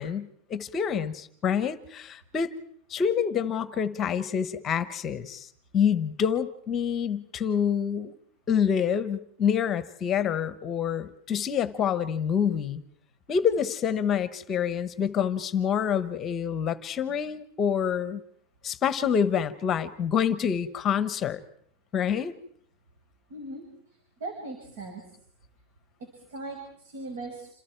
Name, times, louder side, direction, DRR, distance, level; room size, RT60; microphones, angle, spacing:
voice 1, 0.0-2.5 2.9-5.5 5.7-8.1 8.5-12.8 13.3-18.2 18.6-21.4 21.9-22.3, left 7 dB, 25° left, 13 dB, 1.1 m, -27 dB
voice 2, 23.3-23.6 24.2-25.0 26.3-27.5, right 2 dB, 85° right, 3 dB, 5.9 m, -38 dB
28.0 x 27.5 x 4.6 m, 0.64 s
supercardioid pair, 170°, 0 cm